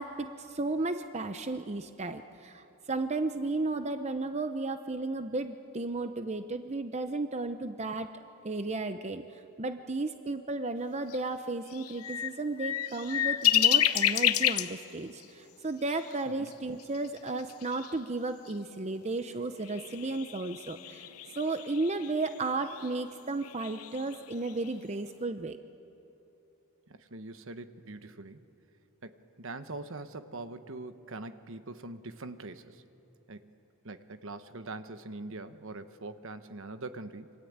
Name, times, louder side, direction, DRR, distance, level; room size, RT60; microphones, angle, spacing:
voice 1, 0.0-8.1 8.4-9.2 9.6-21.1 21.4-25.6, right 2 dB, 30° right, 8 dB, 0.7 m, -34 dB
sound 1, 11.1-11.2 11.7-14.8 15.2-15.3 15.9-16.2 16.5-16.6 16.8-18.0 18.5-18.6 19.7-22.9 23.4-24.7, left 11 dB, 80° left, 0.9 m, -30 dB
voice 2, 26.9-28.4 29.0-32.8 33.3-33.5 33.8-37.3, right 2 dB, 60° right, 10 dB, 1.1 m, -43 dB
27.5 x 25.0 x 8.8 m, 2.8 s
head